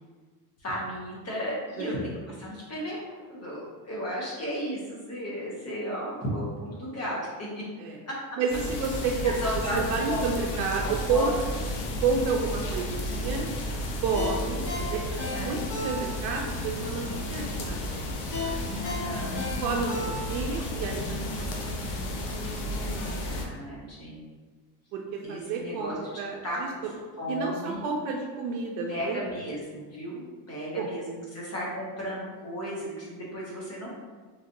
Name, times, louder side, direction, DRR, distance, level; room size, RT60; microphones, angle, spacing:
voice 1, 0.6-7.6 8.1-8.2 9.2-9.8 10.0-11.3 15.3-15.6 18.7-19.4 22.8-24.2 25.2-26.0 26.4-26.8 27.2-27.8 28.9-34.0, equal, 30° left, -5 dB, 0.9 m, -35 dB
voice 2, 8.4-9.4 9.7-11.4 12.0-13.5 14.0-18.6 19.6-21.3 21.6-21.7 24.9-25.0 25.3-26.7 27.3-29.2 30.7-30.9, right 4 dB, 70° right, 0 dB, 0.6 m, -30 dB
sound 1, 8.5-23.4, left 1 dB, 50° left, 0.7 m, -33 dB
Ringtone, 14.1-16.4 16.8-16.9 18.3-20.6 20.9-21.0, left 3 dB, 85° left, 1.1 m, -35 dB
3.3 x 2.5 x 2.6 m, 1.4 s
supercardioid pair, 90°, 50 cm